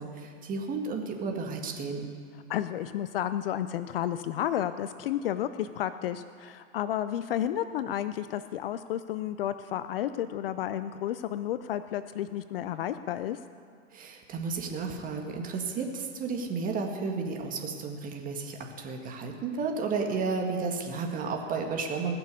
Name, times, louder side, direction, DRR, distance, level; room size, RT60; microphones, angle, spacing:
voice 1, 0.0-2.1 13.9-22.2, right 4 dB, 20° right, 3 dB, 1.7 m, -32 dB
voice 2, 2.5-13.4, left 11 dB, 45° left, 12 dB, 0.5 m, -32 dB
19.5 x 6.9 x 8.3 m, 2.2 s
hypercardioid pair, 130°, 39 cm